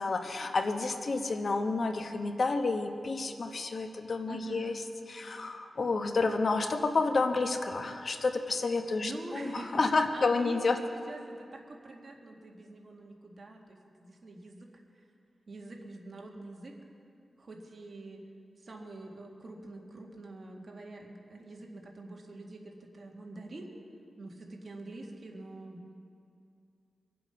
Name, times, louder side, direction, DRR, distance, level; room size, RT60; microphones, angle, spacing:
voice 1, 0.0-4.7 5.1-10.8, left 3 dB, 55° left, 5 dB, 1.1 m, -30 dB
voice 2, 4.3-4.8 9.0-9.8 10.1-14.7 15.5-16.8 17.4-18.3 18.6-23.7 24.2-25.8, right 2 dB, 50° right, 0 dB, 2.0 m, -45 dB
23.5 x 7.8 x 5.7 m, 2.5 s
cardioid pair, 75°, 0 cm